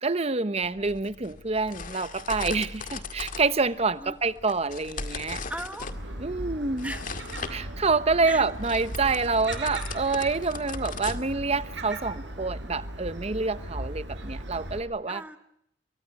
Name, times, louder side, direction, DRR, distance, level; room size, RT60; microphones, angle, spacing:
voice 1, 0.0-5.4 6.2-6.9 7.5-15.2, right 4 dB, 35° right, 1.0 m, -27 dB
sound 1, 0.6-11.8, left 4 dB, 45° left, 2.0 m, -39 dB
voice 2, 5.5-6.1 6.8-7.1 8.2-8.4 9.9-10.2 15.1-15.4, right 1 dB, 10° right, 1.5 m, -38 dB
Gull seagull, 5.9-14.8, right 1 dB, 75° right, 6.0 m, -38 dB
29.5 x 24.0 x 6.0 m
head